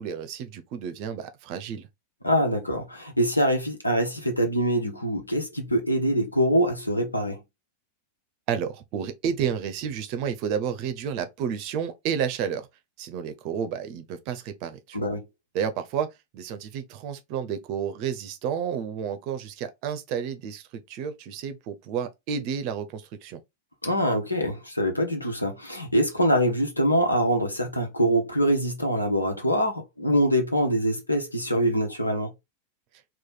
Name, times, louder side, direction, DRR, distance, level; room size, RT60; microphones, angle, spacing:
voice 1, 0.0-1.9 8.5-12.7 13.0-15.1 15.5-16.1 16.3-23.4, right 7 dB, 45° right, 0.6 m, -31 dB
voice 2, 2.2-7.4 14.9-15.2 23.8-32.3, equal, 85° left, 0.9 m, -24 dB
3.1 x 2.2 x 4.0 m
figure-of-eight pair, 90°, 0 cm